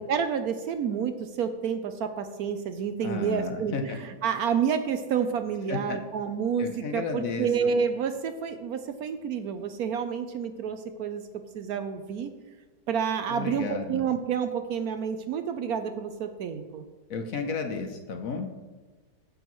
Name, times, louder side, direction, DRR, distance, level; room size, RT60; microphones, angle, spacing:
voice 1, 0.0-11.2 11.5-12.3 12.9-16.8, right 7 dB, 70° right, 8 dB, 1.0 m, -29 dB
voice 2, 3.0-4.0 5.7-6.0 6.6-7.5 13.3-14.0 17.1-18.5, left 4 dB, 60° left, 5 dB, 1.1 m, -33 dB
15.0 x 6.4 x 3.1 m, 1.3 s
omnidirectional pair, 1.9 m